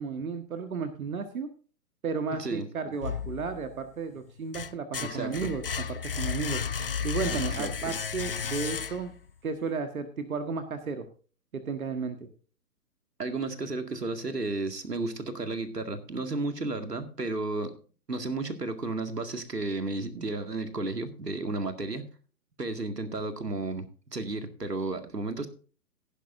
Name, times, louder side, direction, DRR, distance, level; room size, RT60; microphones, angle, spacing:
voice 1, 0.0-1.5 2.0-6.6 7.0-9.1 9.4-11.1 11.5-12.3, right 5 dB, 60° right, 8 dB, 1.7 m, -33 dB
sound 1, 3.0-3.8 4.3-9.3, left 6 dB, 40° left, 0.4 m, -33 dB
voice 2, 5.0-5.5 7.3-7.9 13.2-17.7 18.1-22.1 22.6-23.8 24.1-25.5, right 2 dB, 80° right, 8 dB, 2.2 m, -33 dB
16.0 x 11.5 x 2.6 m, 0.38 s
figure-of-eight pair, 125°, 47 cm